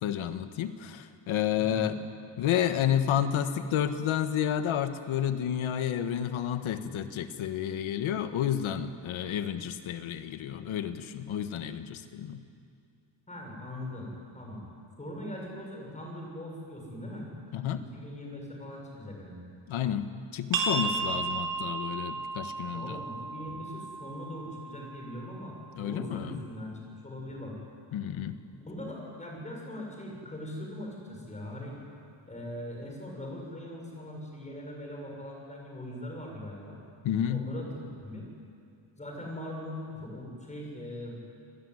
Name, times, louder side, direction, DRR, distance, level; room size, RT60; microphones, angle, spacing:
voice 1, 0.0-2.0 2.4-12.4 17.5-17.8 19.7-23.0 25.8-26.4 27.9-28.4 37.0-37.4, left 10 dB, 80° left, 9 dB, 1.7 m, -30 dB
voice 2, 1.6-1.9 13.3-14.6 15.0-17.3 17.7-19.4 22.7-27.5 28.6-31.8 32.3-36.8 37.3-38.3 39.0-41.2, left 1 dB, 15° left, 0 dB, 7.2 m, -41 dB
sound 1, 20.5-25.9, right 3 dB, 45° right, 4.2 m, -34 dB
28.5 x 20.0 x 9.9 m, 2.4 s
cardioid pair, 165°, 48 cm